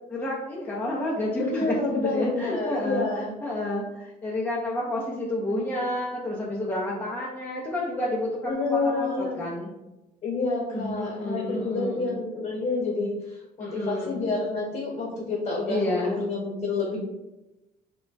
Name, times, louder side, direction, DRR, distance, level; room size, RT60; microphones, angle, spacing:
voice 1, 0.1-3.1 3.4-9.7 10.7-12.1 13.6-14.2 15.7-16.2, left 1 dB, 10° left, -4 dB, 0.5 m, -30 dB
voice 2, 1.4-3.3 8.4-9.4 10.2-17.0, left 3 dB, 40° left, -4 dB, 1.0 m, -28 dB
2.2 x 2.1 x 3.8 m, 0.99 s
cardioid pair, 110°, 17 cm